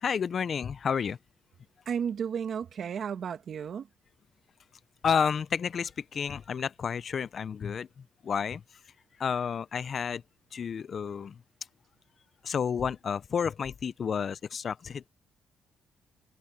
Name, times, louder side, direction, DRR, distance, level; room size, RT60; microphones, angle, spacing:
voice 1, 0.0-1.2 5.0-8.6 9.2-10.2 10.5-11.4 12.4-15.1, left 7 dB, 50° left, 0.7 m, -31 dB
voice 2, 1.9-3.9, right 7 dB, 55° right, 1.9 m, -33 dB
cardioid pair, 90°, 0 cm